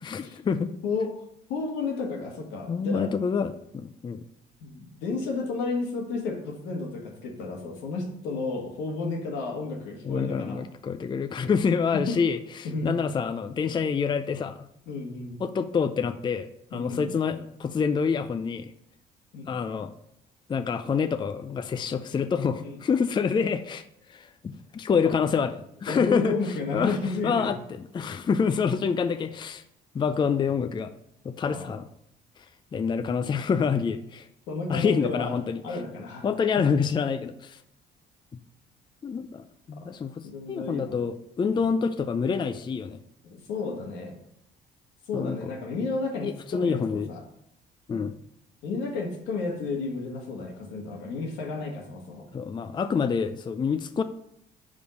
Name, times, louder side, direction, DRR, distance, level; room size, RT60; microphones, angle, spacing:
voice 1, 0.1-0.7 2.7-4.2 10.0-14.6 15.4-18.7 19.5-19.9 20.5-23.8 24.1-26.3 26.7-27.0 27.2-29.6 29.9-30.9 31.2-31.9 32.7-34.3 34.7-35.6 36.2-37.6 39.0-43.0 45.1-45.4 46.2-47.1 47.9-48.1 52.3-54.0, left 6 dB, 25° left, 10 dB, 0.4 m, -27 dB
voice 2, 0.8-1.2 1.5-3.1 4.6-10.7 11.9-12.1 12.6-13.0 14.9-15.4 16.7-17.1 19.3-19.6 22.6-22.8 25.0-25.1 25.9-27.5 31.4-31.7 34.5-35.4 35.6-36.3 39.8-39.9 40.2-41.0 41.5-41.6 43.2-44.2 45.1-47.2 47.9-48.0 48.6-52.3, left 3 dB, 85° left, 1 dB, 1.6 m, -32 dB
5.2 x 4.9 x 6.3 m, 0.76 s
cardioid pair, 85°, 18 cm